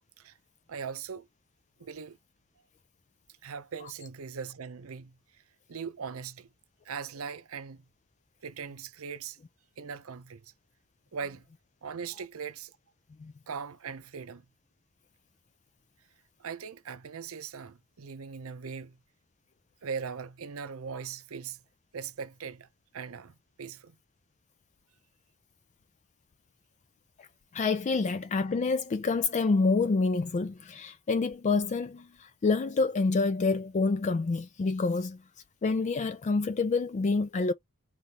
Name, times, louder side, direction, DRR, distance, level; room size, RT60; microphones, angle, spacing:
voice 1, 0.7-1.3 1.8-2.2 3.4-5.2 5.7-6.5 6.8-7.8 8.4-9.4 9.8-10.5 11.1-11.5 11.8-12.7 13.5-14.5 16.4-19.0 19.8-21.6 21.9-22.7 22.9-24.0, right 6 dB, 80° right, 0.6 m, -40 dB
voice 2, 27.5-35.2 35.6-37.5, left 4 dB, 35° left, 0.3 m, -27 dB
4.8 x 3.4 x 2.9 m
head